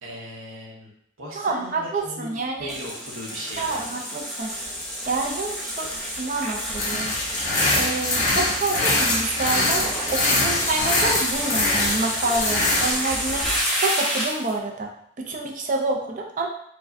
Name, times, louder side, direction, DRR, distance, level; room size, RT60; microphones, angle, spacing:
voice 1, 0.0-0.9 1.2-4.1, equal, 80° right, -3 dB, 0.9 m, -38 dB
voice 2, 1.3-2.7 3.6-7.1 7.4-16.5, right 3 dB, 40° right, 1 dB, 0.4 m, -28 dB
sound 1, 2.7-14.5, equal, ahead, 0.8 m, -30 dB
sound 2, 6.8-12.9, left 2 dB, 35° left, 0.8 m, -23 dB
4.7 x 2.2 x 2.6 m, 0.71 s
head